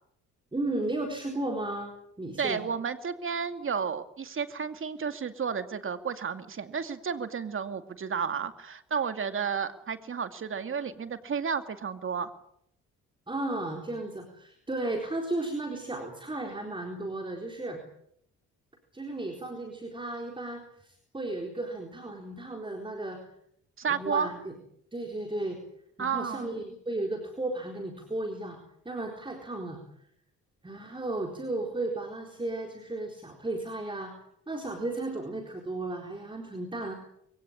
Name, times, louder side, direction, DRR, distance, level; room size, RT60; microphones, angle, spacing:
voice 1, 0.5-2.6 13.3-17.8 18.9-23.3 23.9-24.6 24.9-25.6 26.0-28.6 28.8-29.8 30.6-34.1 34.5-36.9, right 2 dB, 15° right, 3 dB, 4.1 m, -34 dB
voice 2, 2.4-12.3 23.8-24.3 26.0-26.5, right 6 dB, 45° right, 9 dB, 2.5 m, -32 dB
23.0 x 17.5 x 9.9 m, 0.71 s
cardioid pair, 90°, 30 cm